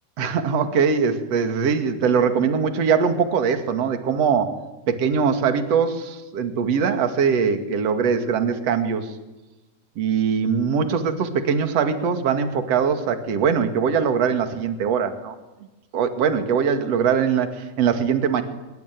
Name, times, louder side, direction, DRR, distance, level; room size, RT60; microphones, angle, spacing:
voice 1, 0.2-4.6 4.9-9.1 10.0-15.4 15.9-18.4, right 6 dB, 45° right, 7 dB, 3.0 m, -22 dB
25.0 x 22.5 x 9.6 m, 1.1 s
omnidirectional pair, 4.6 m